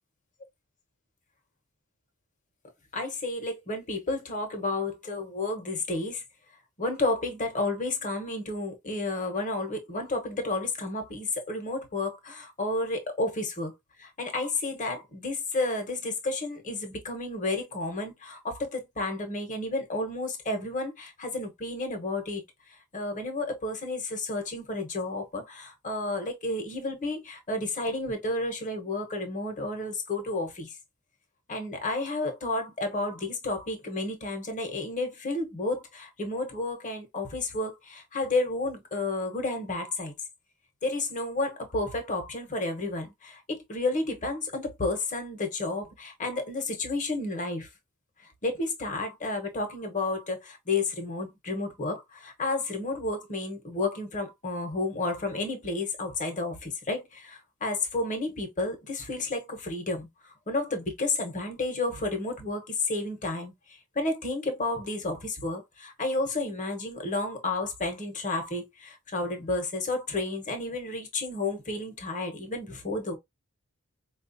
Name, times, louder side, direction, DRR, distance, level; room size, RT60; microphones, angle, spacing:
voice 1, 2.9-6.2 6.8-13.7 14.0-22.4 22.9-30.7 31.5-40.1 40.8-47.7 48.4-63.5 63.9-73.2, left 2 dB, 35° left, 1.0 m, -31 dB
4.4 x 2.4 x 2.6 m
head